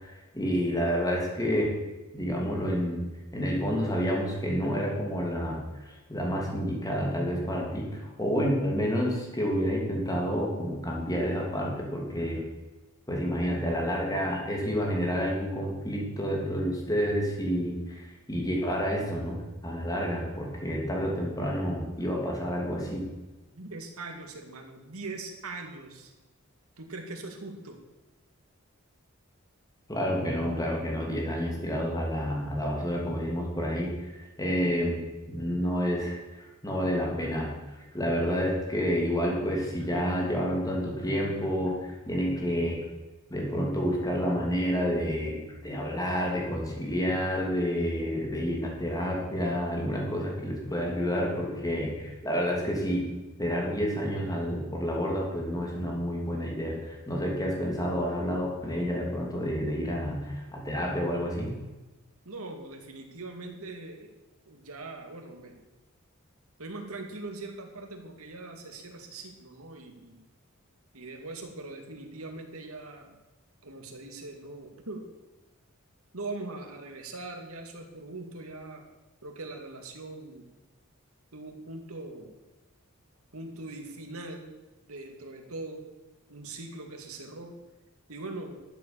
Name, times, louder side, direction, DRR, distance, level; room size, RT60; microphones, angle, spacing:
voice 1, 0.0-1.7 2.1-3.0 3.3-12.4 13.1-23.1 29.9-35.0 35.3-37.5 37.9-42.8 43.3-53.1 53.4-61.5, equal, 15° left, -1 dB, 2.8 m, -29 dB
voice 2, 23.5-26.1 26.8-27.8 62.2-64.1 64.5-65.7 66.6-70.2 70.9-73.1 73.6-75.0 76.1-78.8 79.2-80.5 81.3-82.3 83.3-84.5 84.9-85.8 86.3-87.5 88.1-88.6, right 2 dB, 80° right, 3 dB, 2.3 m, -41 dB
12.5 x 7.5 x 7.0 m, 1.1 s
head